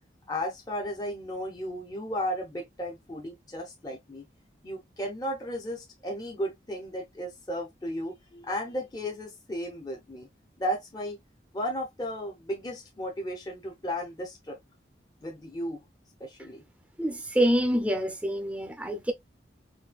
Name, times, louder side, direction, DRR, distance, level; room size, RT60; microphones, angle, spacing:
voice 1, 0.3-4.2 4.6-10.3 10.6-11.2 11.5-14.6 15.2-15.8 16.2-16.6, equal, 20° left, 0.7 m, -34 dB
voice 2, 17.0-19.1, equal, 5° right, 0.6 m, -26 dB
4.2 x 2.7 x 2.3 m
head